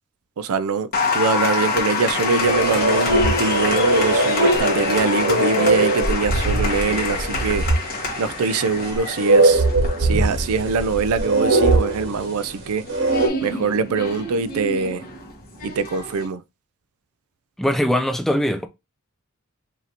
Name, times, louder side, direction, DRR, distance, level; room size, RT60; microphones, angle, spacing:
voice 1, 0.4-0.9 1.1-7.7 8.2-9.7 10.0-15.1 15.6-16.4, right 4 dB, 80° right, 0.4 m, -23 dB
Applause, 0.9-16.3, left 3 dB, 40° left, 1.2 m, -27 dB
sound 1, 2.4-7.8 8.0-8.1 8.9-12.5 12.9-13.3, right 2 dB, 55° right, 1.1 m, -20 dB
voice 2, 17.6-18.7, equal, ahead, 0.3 m, -21 dB
5.0 x 2.7 x 2.9 m
head